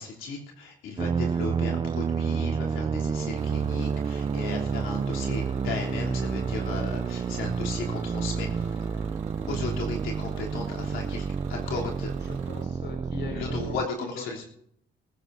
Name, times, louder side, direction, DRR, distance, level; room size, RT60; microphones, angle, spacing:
voice 1, 0.0-8.8 9.4-12.1 13.3-14.4, left 4 dB, 85° left, -2 dB, 3.3 m, -36 dB
sound 1, 1.0-13.9, right 6 dB, 25° right, 0.4 m, -29 dB
Bus / Engine, 3.4-12.6, right 7 dB, 85° right, 2.1 m, -50 dB
Wind instrument woodwind instrument, 5.0-9.3, left 2 dB, 35° left, 6.4 m, -51 dB
voice 2, 12.2-13.8 14.1-14.3, left 4 dB, 60° left, 2 dB, 5.2 m, -40 dB
19.0 x 15.5 x 2.7 m, 0.70 s
cardioid pair, 90°, 20 cm